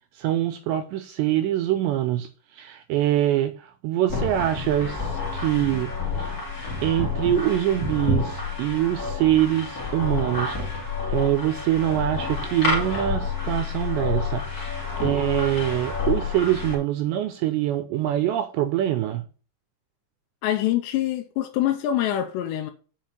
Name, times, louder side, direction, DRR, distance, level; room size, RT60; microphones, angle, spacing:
voice 1, 0.2-5.9 6.2-6.3 6.8-10.6 11.1-19.2, right 13 dB, 80° right, 2.6 m, -24 dB
sound 1, 4.1-16.7, left 4 dB, 25° left, 2.1 m, -29 dB
voice 2, 20.4-22.7, left 12 dB, 80° left, 2.7 m, -25 dB
7.5 x 5.0 x 7.3 m
omnidirectional pair, 5.6 m